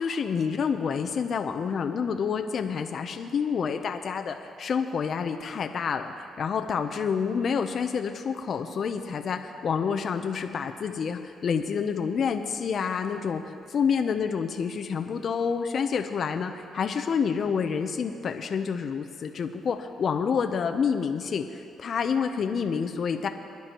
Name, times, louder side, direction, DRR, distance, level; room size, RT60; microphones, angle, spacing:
voice 1, 0.0-13.4 13.7-23.3, left 6 dB, 55° left, 6 dB, 0.6 m, -28 dB
23.0 x 10.5 x 3.0 m, 2.6 s
cardioid pair, 90°, 0 cm